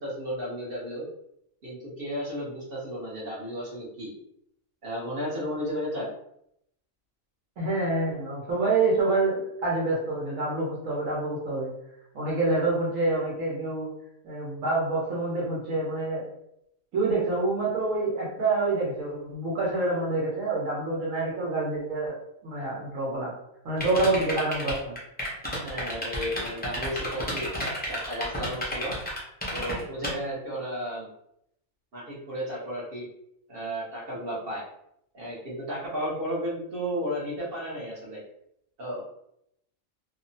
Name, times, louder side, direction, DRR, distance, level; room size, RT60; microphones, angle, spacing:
voice 1, 0.0-1.0 1.6-4.1 4.8-6.1 25.6-27.5 27.9-29.0 29.5-31.1 31.9-33.1 33.5-34.6 35.1-38.2 38.8-39.0, equal, 50° right, -5 dB, 0.9 m, -33 dB
voice 2, 7.6-11.7 12.1-13.9 14.2-16.2 16.9-22.1 22.4-23.3 23.6-24.9, right 2 dB, 80° right, -5 dB, 1.2 m, -27 dB
sound 1, 23.8-30.1, left 1 dB, 15° left, 0.3 m, -31 dB
2.9 x 2.0 x 2.6 m, 0.76 s
omnidirectional pair, 1.4 m